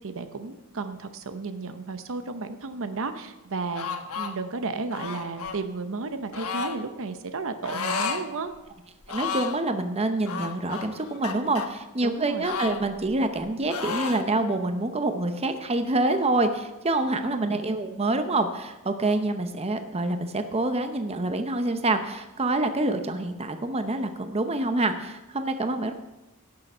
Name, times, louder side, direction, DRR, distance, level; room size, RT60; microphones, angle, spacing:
voice 1, 0.0-8.5 12.0-12.5 17.2-17.7, right 3 dB, 65° right, 9 dB, 0.8 m, -33 dB
sound 1, 3.7-4.3 4.9-5.6 6.3-6.8 7.6-8.2 8.5-8.6 9.0-9.6 10.3-11.7 12.4-13.4 13.7-14.3, left 5 dB, 70° left, 1.2 m, -32 dB
voice 2, 9.1-25.9, right 2 dB, 30° right, 7 dB, 0.8 m, -26 dB
17.0 x 6.7 x 5.6 m, 1.0 s
head